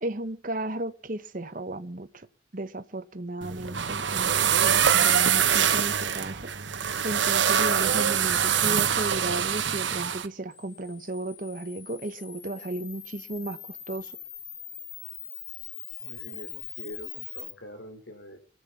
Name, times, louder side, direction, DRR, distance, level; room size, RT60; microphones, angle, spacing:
voice 1, 0.0-2.3 2.5-6.5 6.8-13.6 13.9-14.1, right 1 dB, 45° right, 1.0 m, -34 dB
sound 1, 3.4-10.3, right 8 dB, 70° right, 1.2 m, -24 dB
Camera, 10.5-17.5, left 9 dB, 45° left, 2.2 m, -42 dB
voice 2, 16.0-18.4, left 1 dB, 70° left, 3.3 m, -44 dB
23.5 x 8.1 x 6.9 m
head